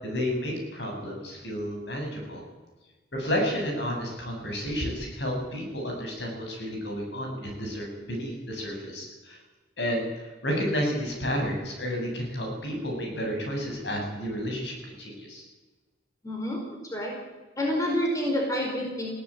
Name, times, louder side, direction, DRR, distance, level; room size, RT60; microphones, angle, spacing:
voice 1, 0.0-2.4 3.1-9.4 9.8-15.4, equal, 70° left, 1 dB, 7.8 m, -31 dB
voice 2, 16.2-16.6 16.9-17.1 17.6-19.1, left 1 dB, 20° left, 0 dB, 5.0 m, -28 dB
20.5 x 17.0 x 9.1 m, 1.3 s
head